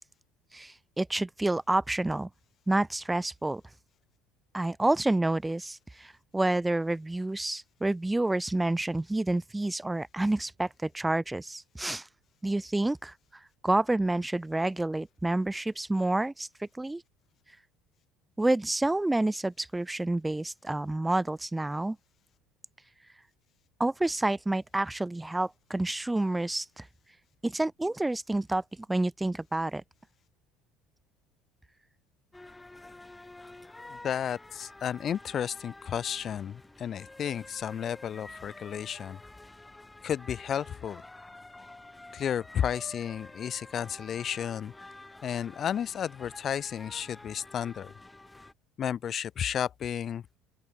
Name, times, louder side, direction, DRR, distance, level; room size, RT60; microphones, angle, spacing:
voice 1, 0.5-2.3 2.7-3.6 4.5-12.1 12.4-17.0 18.4-22.0 23.8-26.9 27.4-28.6 28.9-29.8, right 2 dB, 10° right, 0.3 m, -29 dB
sound 1, 32.3-48.5, left 2 dB, 10° left, 1.1 m, -49 dB
voice 2, 33.9-39.2 40.0-41.0 42.1-44.7 45.2-47.9 48.8-50.4, left 9 dB, 45° left, 0.6 m, -33 dB
open air
hypercardioid pair, 75°, 0 cm